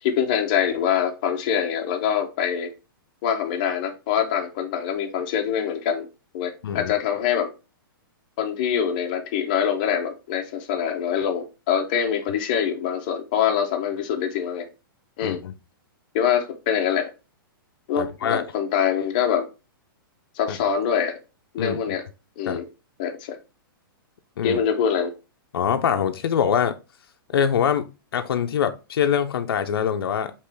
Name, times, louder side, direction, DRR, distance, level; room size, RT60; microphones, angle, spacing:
voice 1, 0.0-2.7 3.2-6.1 6.3-7.5 8.4-14.7 15.2-15.4 16.1-17.1 17.9-19.5 20.4-21.2 21.5-22.0 22.4-22.7 23.0-23.4 24.4-25.1, left 8 dB, 20° left, 0.5 m, -24 dB
voice 2, 15.2-15.5 18.0-18.4 20.5-20.6 21.6-22.0 22.5-22.6 24.4-24.6 25.5-26.8 27.3-30.3, left 8 dB, 90° left, 0.4 m, -24 dB
4.7 x 2.9 x 3.3 m
hypercardioid pair, 180°, 12 cm